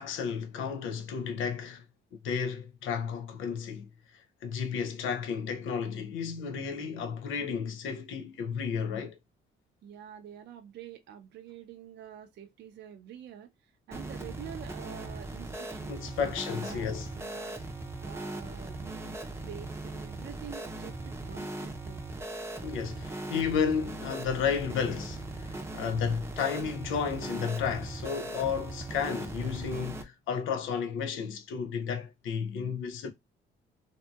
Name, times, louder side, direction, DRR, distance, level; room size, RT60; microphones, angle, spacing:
voice 1, 0.0-1.8 2.2-9.2 15.9-17.1 22.6-33.1, left 6 dB, 80° left, 0.6 m, -32 dB
voice 2, 9.8-13.5 13.9-16.3 16.6-17.6 18.0-22.0, right 9 dB, 60° right, 0.5 m, -47 dB
sound 1, 13.9-30.0, right 2 dB, 15° right, 0.6 m, -39 dB
2.7 x 2.6 x 2.3 m
cardioid pair, 90°, 20 cm